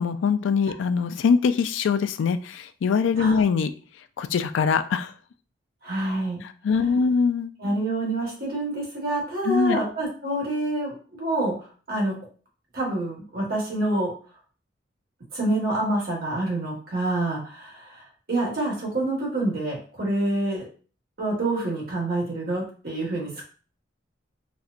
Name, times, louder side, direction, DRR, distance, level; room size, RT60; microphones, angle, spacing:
voice 1, 0.0-3.7 4.2-5.1 6.6-7.5 9.5-9.8, left 5 dB, 75° left, 10 dB, 0.3 m, -22 dB
voice 2, 5.8-6.4 7.6-12.1 12.7-14.1 15.3-20.6 21.2-23.5, right 2 dB, 50° right, -3 dB, 1.3 m, -27 dB
4.1 x 2.1 x 2.4 m, 0.38 s
head